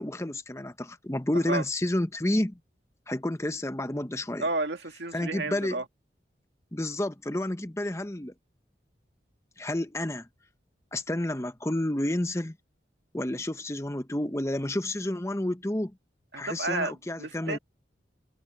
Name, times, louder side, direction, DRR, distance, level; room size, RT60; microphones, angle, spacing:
voice 1, 0.0-2.6 3.1-4.5 5.1-5.8 6.7-8.3 9.6-10.3 10.9-12.6 13.1-16.0 16.4-17.6, left 1 dB, 15° left, 0.9 m, -30 dB
voice 2, 4.4-5.8 16.3-16.9 17.2-17.6, right 2 dB, 80° right, 1.9 m, -31 dB
head